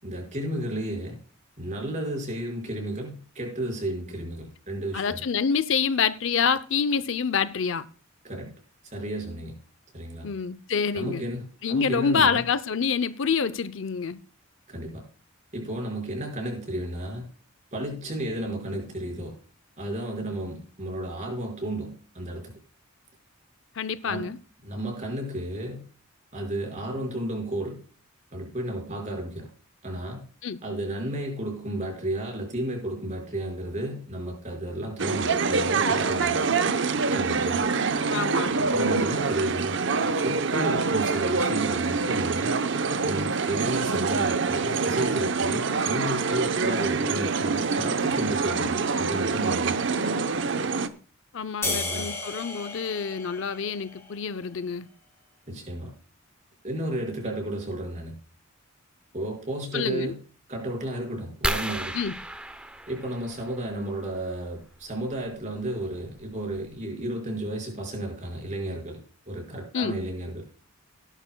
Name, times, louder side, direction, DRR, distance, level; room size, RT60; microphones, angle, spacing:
voice 1, 0.0-1.2 1.6-5.2 8.2-8.5 8.9-9.6 9.9-10.3 10.9-12.4 14.7-15.0 15.5-17.3 17.7-19.4 19.8-22.5 24.0-24.3 24.6-25.8 26.3-27.8 28.3-29.5 29.8-30.2 30.6-36.4 37.1-37.6 38.6-39.8 40.1-42.6 43.0-49.8 51.6-52.1 55.5-55.9 56.6-58.2 59.1-60.2 60.5-62.0 62.9-69.0 69.3-70.5, right 1 dB, 35° right, 5.2 m, -32 dB
voice 2, 4.9-7.9 10.2-11.2 11.6-14.2 23.8-24.4 30.4-30.6 38.1-38.6 51.3-54.9 59.7-60.1 61.9-62.1 69.7-70.0, left 6 dB, 60° left, 0.6 m, -27 dB
sound 1, 35.0-50.9, right 4 dB, 60° right, 0.8 m, -25 dB
sound 2, 51.6-54.2, left 3 dB, 10° left, 2.8 m, -33 dB
sound 3, 61.4-63.8 65.4-65.6 66.2-66.3 66.6-66.8, right 1 dB, 5° right, 0.6 m, -33 dB
18.0 x 11.0 x 2.2 m
head